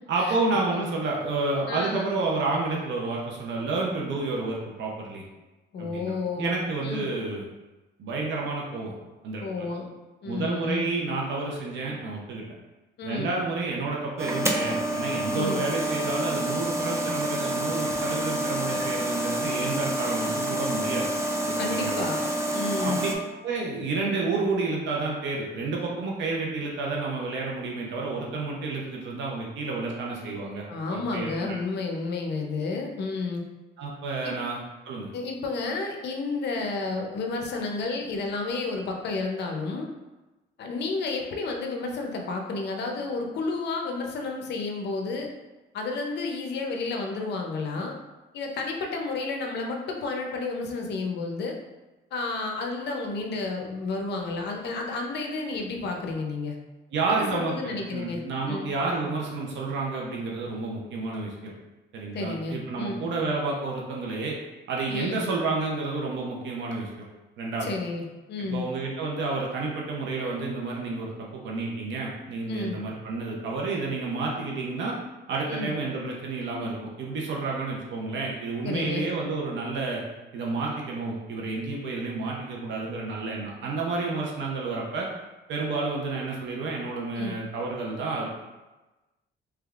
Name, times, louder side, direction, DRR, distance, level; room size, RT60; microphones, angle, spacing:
voice 1, 0.1-5.2 5.8-7.5 8.0-8.9 9.2-9.7 10.2-12.4 13.0-21.1 21.4-22.0 22.8-23.1 23.4-30.6 30.9-31.6 33.8-35.1 56.9-61.5 61.9-64.4 64.7-67.1 67.4-67.7 68.4-75.0 75.3-80.0 80.3-85.1 85.5-88.3, right 3 dB, 75° right, -2 dB, 0.7 m, -30 dB
voice 2, 1.7-2.1 5.7-6.5 6.8-7.1 9.4-9.9 10.2-10.9 13.0-13.3 15.3-15.6 21.5-22.3 22.5-23.0 30.7-33.4 34.2-34.4 35.1-39.9 40.6-45.3 45.7-47.9 48.3-51.6 52.1-56.6 57.1-58.2 58.5-58.7 62.1-63.0 64.9-65.2 67.6-68.7 72.5-72.7 75.5-75.7 78.6-79.0 87.1-87.3, left 3 dB, 65° left, 2 dB, 0.6 m, -31 dB
sound 1, 14.2-23.2, right 1 dB, 15° right, 0.4 m, -28 dB
3.4 x 3.2 x 2.4 m, 1.1 s
cardioid pair, 110°, 19 cm